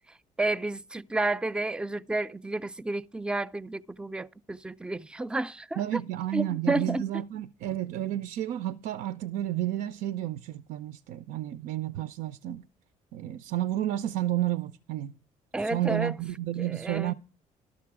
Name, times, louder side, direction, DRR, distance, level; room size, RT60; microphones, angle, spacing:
voice 1, 0.4-5.8 6.3-7.0 15.5-16.1 16.6-17.1, right 2 dB, 5° right, 0.4 m, -31 dB
voice 2, 5.8-12.6 13.1-15.2 15.6-17.1, right 13 dB, 80° right, 0.5 m, -31 dB
12.0 x 6.7 x 4.7 m
cardioid pair, 90°, 14 cm